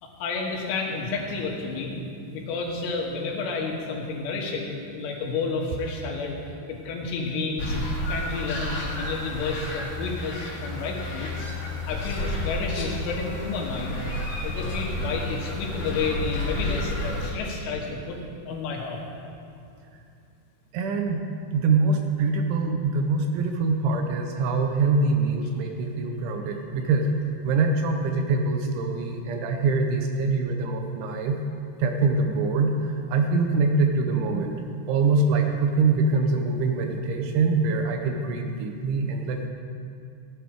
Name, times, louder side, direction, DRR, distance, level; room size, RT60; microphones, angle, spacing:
voice 1, 0.0-2.0 2.2-6.3 6.7-7.8 8.1-11.5 11.9-14.0 14.4-19.0, left 4 dB, 75° left, -1 dB, 3.9 m, -31 dB
sound 1, 7.6-17.3, left 1 dB, 45° left, 3.8 m, -31 dB
voice 2, 20.7-21.2 21.5-27.1 27.4-31.4 31.8-34.6 34.9-39.5, right 3 dB, 75° right, 4 dB, 3.0 m, -24 dB
16.5 x 10.5 x 4.8 m, 2.5 s
omnidirectional pair, 5.8 m